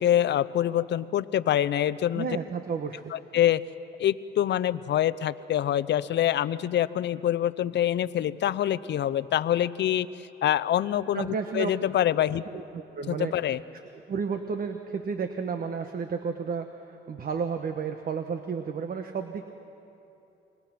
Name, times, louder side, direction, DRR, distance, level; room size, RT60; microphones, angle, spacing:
voice 1, 0.0-2.3 3.1-3.6 4.0-10.1 10.4-12.4 13.1-13.6, left 11 dB, 60° left, 14 dB, 0.6 m, -25 dB
voice 2, 2.1-3.1 11.1-11.7 12.4-13.3 13.7-13.8 14.1-19.5, right 5 dB, 50° right, 7 dB, 1.1 m, -32 dB
26.5 x 23.0 x 5.9 m, 2.8 s
cardioid pair, 90°, 20 cm